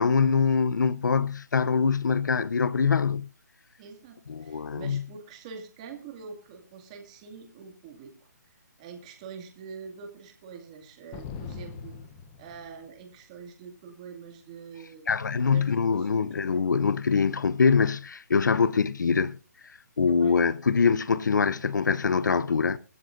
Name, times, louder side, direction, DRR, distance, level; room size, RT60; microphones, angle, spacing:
voice 1, 0.0-3.3 4.3-5.0 15.1-19.4 19.6-22.8, left 5 dB, 90° left, 0.6 m, -24 dB
voice 2, 3.8-12.0 12.4-16.7 18.5-18.6 20.1-20.4, right 6 dB, 20° right, 2.2 m, -45 dB
sound 1, 11.1-13.0, left 6 dB, 15° left, 0.7 m, -41 dB
24.0 x 12.5 x 2.6 m
hypercardioid pair, 170°, 10 cm